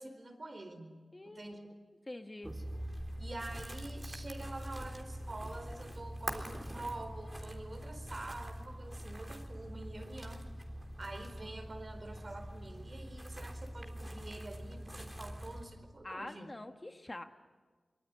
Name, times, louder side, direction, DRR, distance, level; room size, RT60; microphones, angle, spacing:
voice 1, 0.0-0.9 1.2-1.6 3.2-10.4 11.0-16.5, right 2 dB, 50° right, 7 dB, 4.4 m, -46 dB
voice 2, 1.1-1.7 2.1-2.6 16.0-17.2, left 2 dB, 30° left, 7 dB, 1.3 m, -45 dB
sound 1, 2.4-15.6, equal, 20° right, 3.6 m, -44 dB
24.0 x 23.0 x 9.7 m, 1.4 s
cardioid pair, 60°, 0 cm